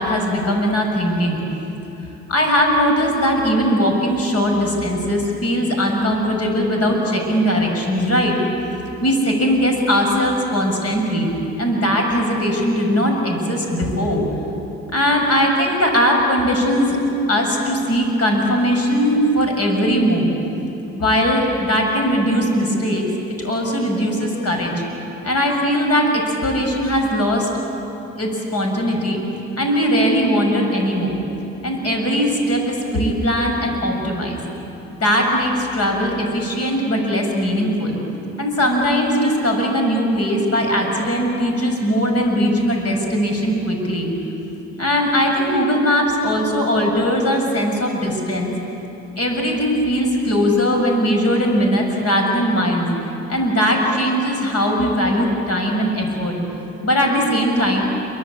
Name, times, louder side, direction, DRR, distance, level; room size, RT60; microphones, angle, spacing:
voice 1, 0.0-1.4 2.3-8.4 9.0-11.3 11.6-14.2 14.9-17.0 17.3-20.3 20.9-23.1 23.4-24.8 25.2-27.5 28.2-29.2 29.6-31.2 31.6-34.4 35.0-38.0 38.4-44.1 44.8-48.5 49.2-52.9 53.3-56.4 56.8-57.8, equal, 55° left, 2 dB, 7.2 m, -19 dB
27.5 x 24.5 x 8.7 m, 3.0 s
cardioid pair, 90°, 30 cm